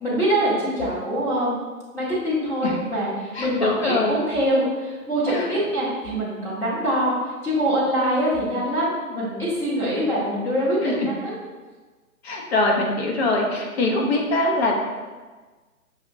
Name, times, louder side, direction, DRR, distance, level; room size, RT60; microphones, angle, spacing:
voice 1, 0.0-1.6 1.9-10.9 11.2-11.3, equal, 5° left, -9 dB, 0.8 m, -24 dB
voice 2, 3.3-4.2 5.3-5.6 10.8-11.1 12.2-14.9, left 2 dB, 45° left, 0 dB, 0.9 m, -23 dB
5.8 x 2.8 x 2.6 m, 1.3 s
figure-of-eight pair, 135°, 43 cm